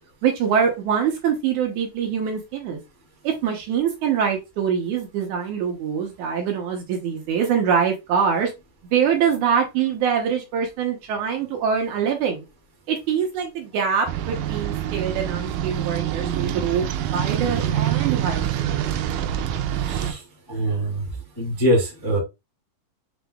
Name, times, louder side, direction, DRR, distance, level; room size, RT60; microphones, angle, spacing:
voice 1, 0.2-2.8 3.2-8.5 8.9-12.4 12.9-18.6, right 7 dB, 70° right, 2 dB, 2.1 m, -24 dB
sound 1, 14.1-20.1, right 10 dB, 85° right, 1.7 m, -25 dB
voice 2, 19.8-20.2 20.5-21.0 21.3-22.2, right 1 dB, 15° left, 0 dB, 0.7 m, -23 dB
7.0 x 3.3 x 2.3 m, 0.24 s
omnidirectional pair, 4.0 m